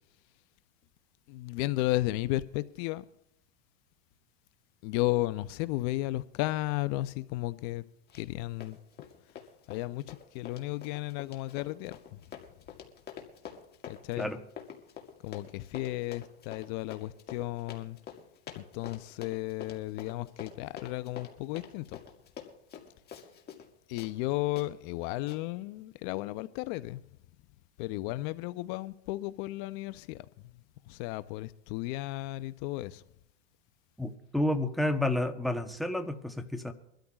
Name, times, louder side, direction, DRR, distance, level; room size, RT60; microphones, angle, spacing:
voice 1, 1.3-3.0 4.8-7.8 8.1-8.8 9.7-12.2 13.8-14.3 15.2-18.0 18.6-22.0 23.9-27.0 27.8-30.5 30.8-33.0, left 17 dB, 50° left, 0.6 m, -34 dB
Run, 8.1-8.4 8.6-23.7 24.0-24.1 24.6-24.7 25.3-25.4, left 8 dB, 30° left, 1.9 m, -46 dB
voice 2, 34.0-36.7, left 1 dB, ahead, 0.9 m, -30 dB
23.5 x 13.0 x 2.4 m
supercardioid pair, 120°, 35 cm